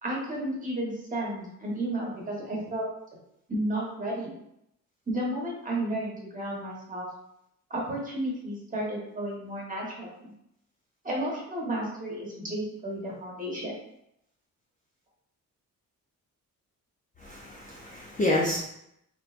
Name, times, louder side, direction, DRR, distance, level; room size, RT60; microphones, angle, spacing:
voice 1, 0.0-2.9 3.5-4.3 5.1-7.1 7.7-10.3 11.0-13.7, right 1 dB, 25° right, -3 dB, 1.1 m, -32 dB
voice 2, 17.2-18.6, left 1 dB, 25° left, -4 dB, 0.6 m, -28 dB
3.3 x 3.0 x 2.5 m, 0.78 s
cardioid pair, 110°, 35 cm